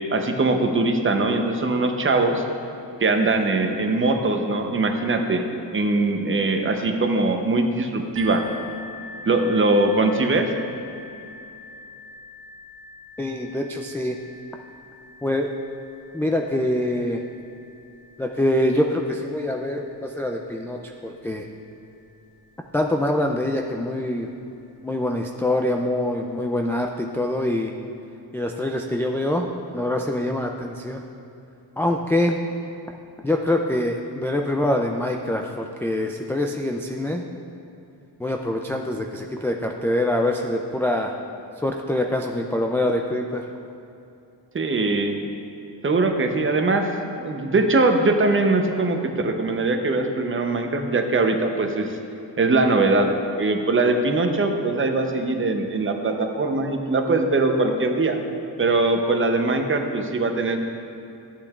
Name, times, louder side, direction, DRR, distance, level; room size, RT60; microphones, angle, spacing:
voice 1, 0.1-2.4 3.0-8.4 9.3-10.5 44.5-45.2 45.8-52.0 52.4-53.1 53.4-58.2 58.6-60.6, right 2 dB, 30° right, 5 dB, 0.8 m, -21 dB
sound 1, 8.1-23.7 24.5-24.6 25.1-25.2, left 2 dB, 75° right, 1.2 m, -45 dB
voice 2, 13.2-14.2 15.2-15.5 16.1-17.2 18.2-21.4 22.7-24.3 24.8-27.7 28.3-29.5 29.7-31.0 31.8-32.4 33.2-37.2 38.2-41.2 41.6-43.4, left 1 dB, 5° left, 1 dB, 0.3 m, -24 dB
11.5 x 8.5 x 2.4 m, 2.8 s
cardioid pair, 90°, 43 cm